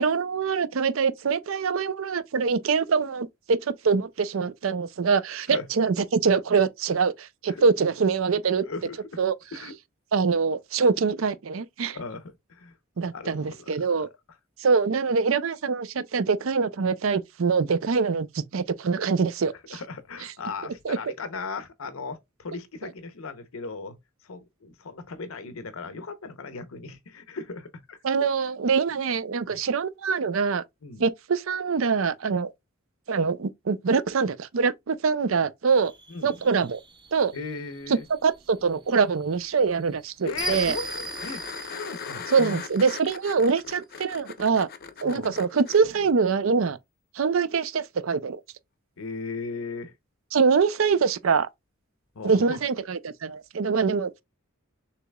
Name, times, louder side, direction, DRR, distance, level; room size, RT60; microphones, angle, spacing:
voice 1, 0.0-8.6 9.2-9.3 10.1-12.0 13.0-14.1 14.6-19.8 20.8-21.0 28.0-30.6 31.0-32.5 33.1-35.9 36.2-36.8 37.1-37.3 37.9-40.8 42.3-44.7 45.0-46.8 47.1-48.4 50.3-51.5 52.2-54.2, right 5 dB, 70° right, 0.5 m, -24 dB
voice 2, 8.6-9.2 9.5-9.8 11.9-12.7 13.0-13.9 19.7-24.0 24.2-28.0 29.4-29.6 30.8-31.1 36.1-36.4 37.3-38.0 40.2-42.6 45.0-45.4 49.0-49.9 52.1-52.6, left 4 dB, 85° left, 0.8 m, -37 dB
sound 1, 35.8-43.2, right 2 dB, 20° right, 0.6 m, -40 dB
sound 2, 40.3-45.8 48.5-48.6, left 6 dB, 50° left, 0.6 m, -39 dB
6.6 x 3.0 x 2.2 m
head